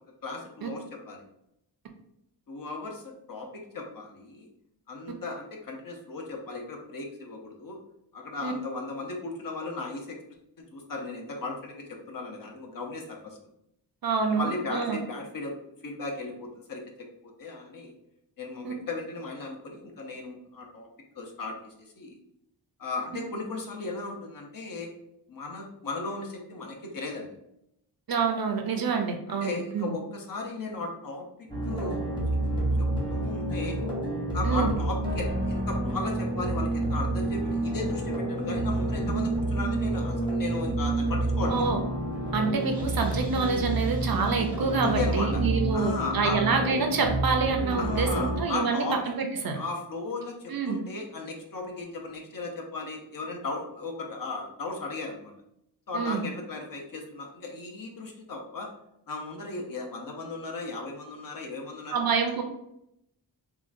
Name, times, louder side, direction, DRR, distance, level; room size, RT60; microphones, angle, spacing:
voice 1, 0.2-1.2 2.5-4.5 4.9-7.8 8.1-10.2 10.6-13.4 14.3-15.6 15.8-17.9 18.4-20.9 21.2-22.2 22.8-24.9 25.3-27.3 28.7-28.8 29.3-32.0 32.8-33.8 34.3-41.7 44.8-45.4 45.7-46.4 47.8-49.1 49.5-55.3 55.9-58.7 59.1-62.0, left 3 dB, 50° left, 1 dB, 0.6 m, -36 dB
voice 2, 14.0-15.0 18.6-18.7 28.1-29.9 34.4-34.7 41.5-41.8 42.3-49.6 50.5-50.8 55.9-56.2 61.9-62.4, right 5 dB, 55° right, 4 dB, 0.5 m, -27 dB
sound 1, 31.5-48.4, right 1 dB, 10° left, 0.8 m, -29 dB
3.7 x 2.2 x 2.5 m, 0.79 s
wide cardioid pair, 125°, 43 cm